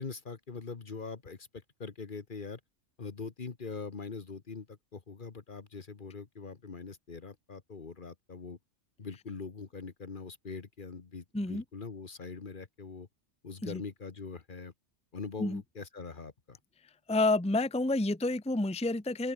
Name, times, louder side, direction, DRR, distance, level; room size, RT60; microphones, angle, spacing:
voice 1, 0.0-2.6 3.0-8.6 9.0-13.1 13.4-14.7 15.1-16.6, left 4 dB, 45° left, 1.4 m, -42 dB
voice 2, 17.1-19.3, left 2 dB, 5° left, 0.9 m, -29 dB
open air
omnidirectional pair, 1.3 m